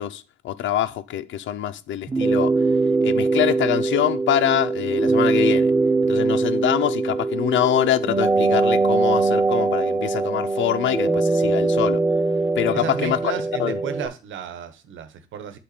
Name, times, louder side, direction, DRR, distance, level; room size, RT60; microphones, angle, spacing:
voice 1, 0.0-2.5 3.0-5.7 6.0-12.0 12.6-13.3 13.6-13.8, left 11 dB, 70° left, 0.6 m, -24 dB
sound 1, 2.1-14.1, right 3 dB, 20° right, 1.0 m, -21 dB
voice 2, 12.7-15.6, right 8 dB, 75° right, 1.1 m, -33 dB
8.4 x 3.7 x 4.2 m
cardioid pair, 90°, 20 cm